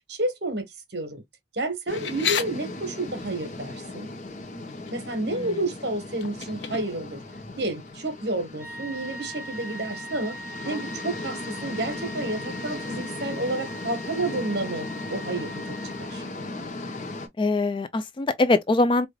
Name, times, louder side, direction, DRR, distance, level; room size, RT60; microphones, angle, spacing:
voice 1, 0.1-0.7 0.9-1.2 1.5-4.1 4.9-7.2 7.6-10.4 10.6-16.2, right 2 dB, 60° right, 1.4 m, -30 dB
sound 1, 1.9-2.5 4.2-4.4 4.7-5.2 6.2-7.2, left 7 dB, 75° left, 0.6 m, -30 dB
sound 2, 1.9-17.3, left 2 dB, 45° left, 0.8 m, -37 dB
sound 3, 8.6-16.5, right 1 dB, 10° right, 1.3 m, -41 dB
voice 2, 17.4-19.1, left 2 dB, 25° left, 0.3 m, -23 dB
4.7 x 2.5 x 2.3 m
head